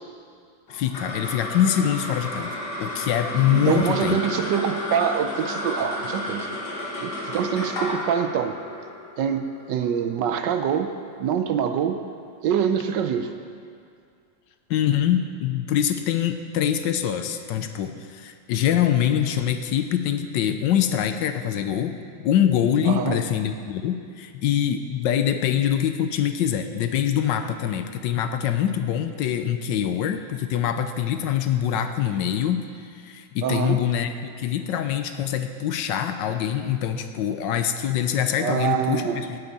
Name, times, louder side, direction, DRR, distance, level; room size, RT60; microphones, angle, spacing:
voice 1, 0.7-4.2 14.7-22.0 22.2-39.4, left 10 dB, 75° left, 8 dB, 1.2 m, -24 dB
sound 1, 0.7-11.3, left 2 dB, 60° left, 2.0 m, -33 dB
voice 2, 3.5-6.5 7.0-8.6 9.2-12.0 12.4-13.3 22.9-23.2 33.4-33.8 38.4-39.3, right 8 dB, 70° right, 8 dB, 1.2 m, -25 dB
18.0 x 8.1 x 4.1 m, 2.2 s
omnidirectional pair, 2.1 m